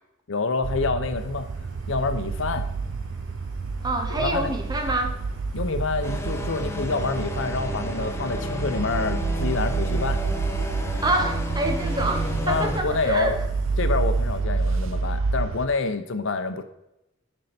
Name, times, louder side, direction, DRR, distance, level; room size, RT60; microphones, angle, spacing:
voice 1, 0.3-1.5 1.9-2.7 4.1-4.5 5.5-10.2 12.5-13.4 13.8-16.6, left 3 dB, 70° left, 9 dB, 0.7 m, -27 dB
sound 1, 0.6-15.7, right 4 dB, 75° right, 0.5 m, -28 dB
sound 2, 1.1-14.4, equal, 50° left, 3.0 m, -48 dB
voice 2, 3.8-5.1 11.0-13.4, right 1 dB, 20° right, 4 dB, 1.0 m, -26 dB
sound 3, 6.0-12.8, left 1 dB, 15° left, 0.7 m, -33 dB
10.0 x 5.4 x 4.3 m, 0.87 s
head